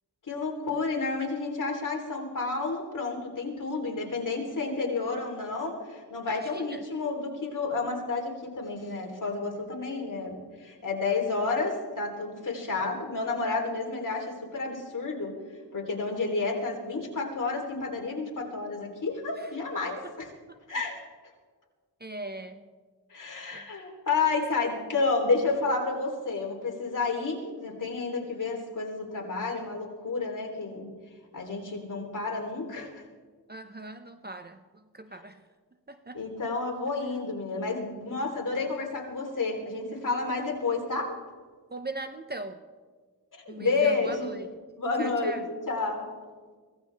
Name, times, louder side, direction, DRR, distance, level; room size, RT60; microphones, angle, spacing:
voice 1, 0.3-15.3 15.7-20.3 20.7-21.0 23.1-30.9 31.3-33.0 36.1-41.1 43.3-44.3 44.8-45.4 45.7-46.1, left 3 dB, 50° left, -1 dB, 3.6 m, -30 dB
voice 2, 6.3-6.8 19.4-19.5 20.0-20.1 20.5-20.6 22.0-22.7 23.5-23.7 33.5-35.4 35.9-36.2 41.7-42.6 43.5-44.5 45.0-45.4, right 2 dB, 25° right, 8 dB, 0.7 m, -40 dB
24.0 x 17.0 x 3.5 m, 1.5 s
wide cardioid pair, 100°, 41 cm